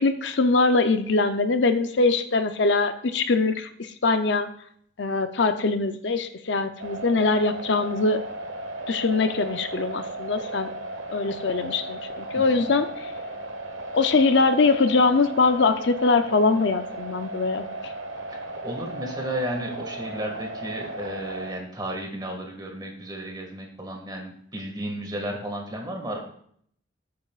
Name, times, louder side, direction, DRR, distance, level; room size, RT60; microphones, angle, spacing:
voice 1, 0.0-4.5 5.0-8.2 8.9-10.7 11.1-13.1 13.9-17.7, left 3 dB, 65° left, 8 dB, 0.6 m, -22 dB
sound 1, 6.8-21.5, right 2 dB, 90° right, 1.2 m, -36 dB
voice 2, 12.3-12.7 18.6-26.2, right 1 dB, 20° right, 2 dB, 1.9 m, -33 dB
19.0 x 8.6 x 2.5 m, 0.64 s
head